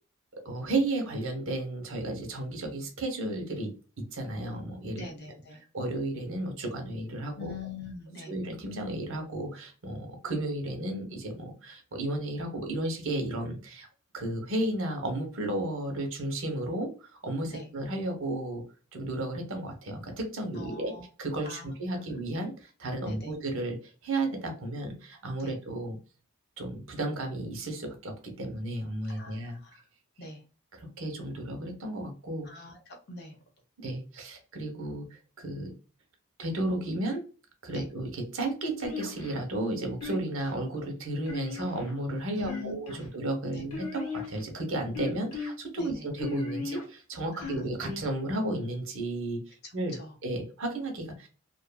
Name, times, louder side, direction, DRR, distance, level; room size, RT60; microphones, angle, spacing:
voice 1, 0.3-3.7 4.1-5.0 5.7-7.5 8.3-13.9 14.1-16.9 17.2-18.6 18.9-20.9 21.2-23.8 24.0-26.0 26.6-29.6 30.7-32.5 33.8-35.1 35.4-35.7 36.4-37.2 37.6-51.3, right 1 dB, 60° right, 3 dB, 0.8 m, -33 dB
voice 2, 4.9-5.6 7.3-8.3 17.5-17.7 20.5-21.0 21.4-21.7 22.0-22.1 23.0-23.3 25.4-25.6 29.1-29.8 30.2-30.4 32.4-33.4 37.7-37.9 42.3-43.1 43.5-43.6 45.8-46.1 47.3-47.6 49.6-50.1, left 3 dB, 45° left, 2 dB, 0.7 m, -43 dB
sound 1, 38.8-39.4 40.0-40.5 41.3-42.0 42.4-43.1 43.7-44.4 44.9-45.5 46.2-46.8 47.4-48.1, left 4 dB, 80° left, 1.1 m, -36 dB
2.6 x 2.5 x 2.2 m, 0.36 s
head